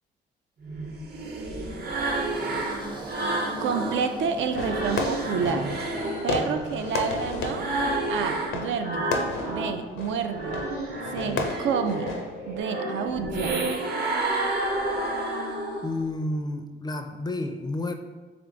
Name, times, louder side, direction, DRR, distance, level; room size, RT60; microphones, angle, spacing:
sound 1, 0.6-4.0 4.4-9.8 10.2-16.0, right 2 dB, 50° right, 0.9 m, -30 dB
sound 2, 1.8-6.9, right 2 dB, 25° right, 0.6 m, -40 dB
voice 1, 3.6-5.8 6.2-7.7 8.1-9.2 9.5-10.6 11.1-12.1 12.5-13.7, right 6 dB, 70° right, 7 dB, 0.4 m, -29 dB
Fireworks, 4.5-12.6, left 3 dB, 85° left, 0.6 m, -33 dB
voice 2, 15.8-17.9, left 2 dB, 20° left, 6 dB, 0.4 m, -30 dB
3.4 x 3.3 x 3.8 m, 1.3 s
cardioid pair, 90°, 20 cm